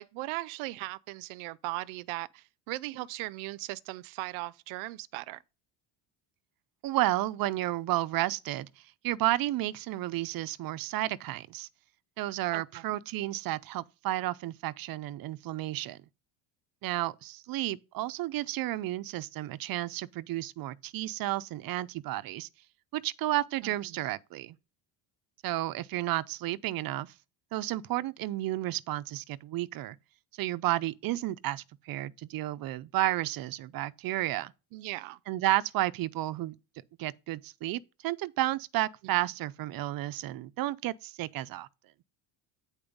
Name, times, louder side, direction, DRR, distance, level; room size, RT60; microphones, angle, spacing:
voice 1, 0.0-5.4 12.5-12.8 23.6-24.0 34.7-35.2 39.0-39.1, right 20 dB, 90° right, 0.7 m, -38 dB
voice 2, 6.8-8.7 9.0-11.7 12.2-16.0 16.8-22.5 22.9-24.6 25.4-27.1 27.5-30.0 30.4-34.5 35.3-36.6 37.0-41.7, right 15 dB, 50° right, 0.6 m, -32 dB
8.7 x 4.4 x 5.1 m
cardioid pair, 140°, 46 cm